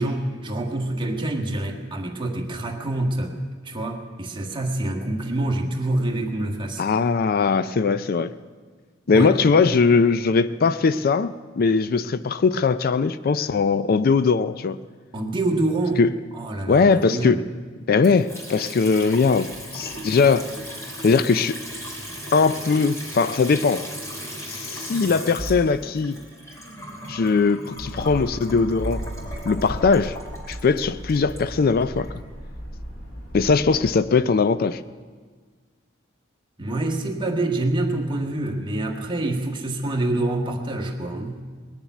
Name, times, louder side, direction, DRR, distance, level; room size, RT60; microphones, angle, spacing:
voice 1, 0.0-3.3 3.6-6.8 9.1-9.3 9.6-9.7 15.1-16.0 16.3-17.4 36.6-41.4, right 2 dB, 25° right, 2 dB, 1.6 m, -26 dB
voice 2, 6.8-8.3 9.1-14.8 16.0-16.1 16.7-17.4 17.9-20.5 21.0-21.6 22.3-23.9 24.5-26.2 27.1-29.0 29.5-30.2 30.5-32.1 33.3-34.8, left 4 dB, 50° left, 14 dB, 0.4 m, -20 dB
Water tap faucet / Sink (filling or washing) / Trickle dribble, 18.0-32.1, equal, 15° left, 3.0 m, -37 dB
sound 1, 27.7-33.9, equal, 75° left, 4.3 m, -35 dB
20.0 x 7.1 x 9.2 m, 1.5 s
head